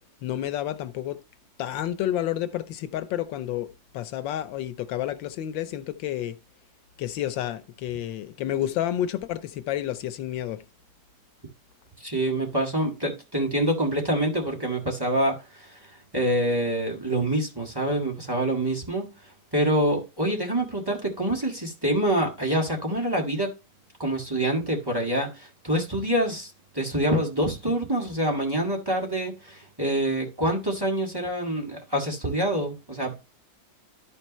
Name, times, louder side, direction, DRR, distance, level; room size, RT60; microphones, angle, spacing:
voice 1, 0.2-1.2 1.6-3.7 3.9-6.4 7.0-10.6, left 12 dB, 90° left, 1.4 m, -30 dB
voice 2, 12.0-19.1 19.5-23.5 24.0-33.1, right 1 dB, 10° right, 1.8 m, -26 dB
12.5 x 4.5 x 3.1 m
omnidirectional pair, 2.0 m